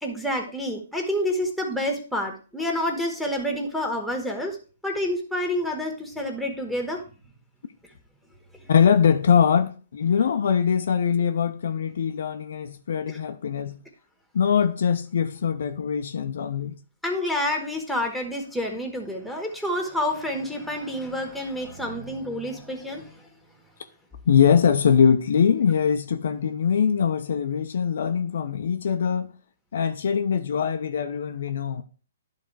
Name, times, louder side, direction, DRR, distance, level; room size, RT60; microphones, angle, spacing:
voice 1, 0.0-4.6 4.8-7.0 8.6-8.7 13.1-13.2 17.0-23.2, left 1 dB, ahead, 1.7 m, -28 dB
voice 2, 8.7-13.8 14.3-16.8 24.3-29.3 29.7-31.8, left 7 dB, 65° left, 0.7 m, -22 dB
11.5 x 3.9 x 4.6 m
hypercardioid pair, 135°, 0 cm